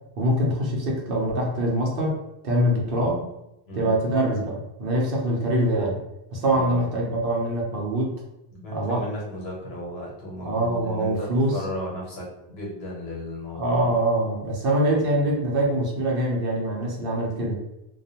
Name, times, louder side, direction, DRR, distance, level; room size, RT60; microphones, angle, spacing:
voice 1, 0.2-2.2 2.4-3.2 3.8-6.0 6.3-8.1 8.7-9.0 10.4-11.6 13.6-17.6, right 1 dB, 65° right, -1 dB, 0.8 m, -24 dB
voice 2, 6.5-6.9 8.5-14.0, left 1 dB, 80° left, -3 dB, 1.1 m, -35 dB
2.3 x 2.2 x 2.7 m, 0.89 s
omnidirectional pair, 1.0 m